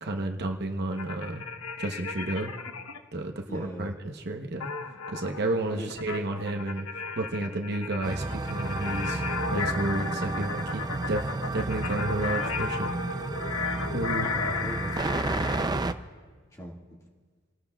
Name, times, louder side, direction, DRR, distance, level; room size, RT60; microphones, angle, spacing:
voice 1, 0.0-1.5 1.8-2.5 3.1-4.7 5.1-9.2 9.5-12.9 13.9-14.3, right 2 dB, 50° right, 3 dB, 0.9 m, -31 dB
sound 1, 0.9-3.0 4.6-15.7, left 5 dB, 85° left, 0.9 m, -35 dB
voice 2, 3.5-3.9 5.7-5.9 14.1-15.9 16.5-17.0, equal, 15° left, -2 dB, 1.9 m, -40 dB
sound 2, 8.0-15.9, right 2 dB, 20° right, 0.4 m, -31 dB
29.0 x 17.5 x 2.3 m, 1.5 s
head